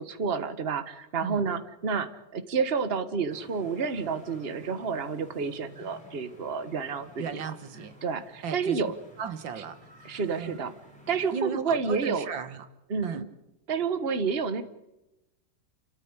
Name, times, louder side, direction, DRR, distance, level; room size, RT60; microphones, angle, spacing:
voice 1, 0.0-7.2 8.0-8.9 9.6-9.7 10.0-10.7 11.1-12.3 12.9-13.3 13.7-14.6, right 5 dB, 35° right, 11 dB, 1.5 m, -29 dB
sound 1, 3.3-11.5, left 1 dB, 5° left, 6.6 m, -52 dB
voice 2, 7.2-7.9 8.4-8.8 9.2-10.6 11.3-12.7 13.0-13.3, right 6 dB, 80° right, 11 dB, 2.1 m, -36 dB
29.5 x 13.5 x 9.8 m, 0.94 s
omnidirectional pair, 2.0 m